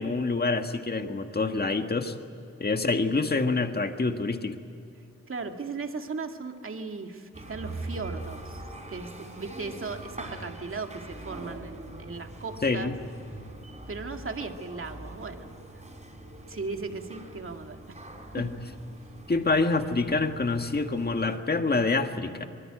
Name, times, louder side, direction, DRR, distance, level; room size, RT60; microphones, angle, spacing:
voice 1, 0.0-2.1 2.6-4.6 12.6-12.9 18.3-18.5 19.3-22.5, left 3 dB, 35° left, 6 dB, 1.8 m, -26 dB
voice 2, 5.3-8.6 8.9-12.9 13.9-15.5 15.7-15.8 16.5-18.0 18.5-18.6, right 4 dB, 45° right, 4 dB, 2.1 m, -37 dB
sound 1, 7.3-21.4, right 2 dB, 25° right, 5.5 m, -43 dB
25.0 x 23.5 x 8.8 m, 2.7 s
wide cardioid pair, 120°, 29 cm